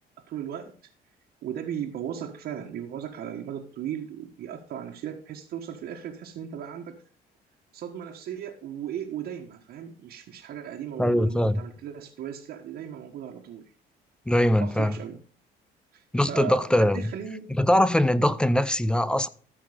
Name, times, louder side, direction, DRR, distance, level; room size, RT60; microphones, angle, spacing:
voice 1, 0.3-0.9 1.4-7.0 7.7-13.7 14.6-15.2 15.9-17.5, right 9 dB, 70° right, 1.5 m, -37 dB
voice 2, 11.0-11.6 14.3-14.9 16.1-17.1 17.6-19.3, left 1 dB, 5° left, 0.6 m, -22 dB
14.0 x 5.8 x 5.1 m
cardioid pair, 110°, 17 cm